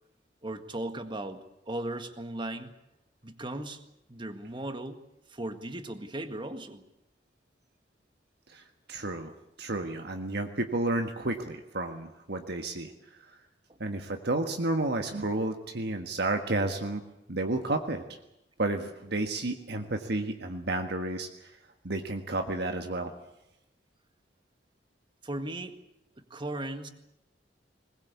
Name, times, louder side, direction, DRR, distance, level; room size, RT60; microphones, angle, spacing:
voice 1, 0.4-1.4 1.7-2.7 3.2-3.8 4.1-5.0 5.3-6.8 13.7-13.8 25.2-25.8 26.3-26.9, right 1 dB, 25° right, 8 dB, 1.8 m, -37 dB
voice 2, 8.5-9.3 9.6-13.4 13.8-17.0 17.3-18.0 18.6-21.5 21.8-23.1, right 2 dB, 65° right, 5 dB, 1.6 m, -31 dB
21.0 x 20.5 x 8.4 m, 0.88 s
head